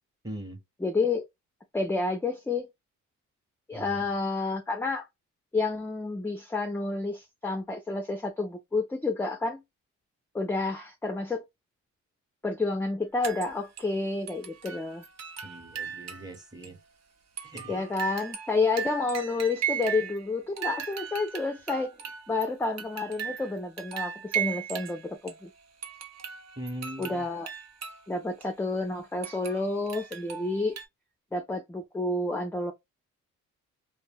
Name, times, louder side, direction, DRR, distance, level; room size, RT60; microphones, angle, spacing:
voice 1, 0.2-0.6 3.7-4.0 15.4-16.8 17.4-17.9 26.6-27.2, right 1 dB, 15° right, 0.8 m, -40 dB
voice 2, 0.8-1.3 1.7-2.7 3.7-5.1 5.5-9.6 10.3-11.5 12.4-15.0 17.7-22.0 22.3-25.5 27.0-27.5 28.1-30.8 31.3-32.7, left 3 dB, 5° left, 0.4 m, -30 dB
sound 1, 13.2-13.9 14.3-16.4 16.6-16.7 17.4-20.3 20.6-25.5 25.8-28.0 28.4-28.5 29.2-30.8, right 8 dB, 60° right, 0.7 m, -37 dB
2.2 x 2.1 x 3.4 m
cardioid pair, 90°, 30 cm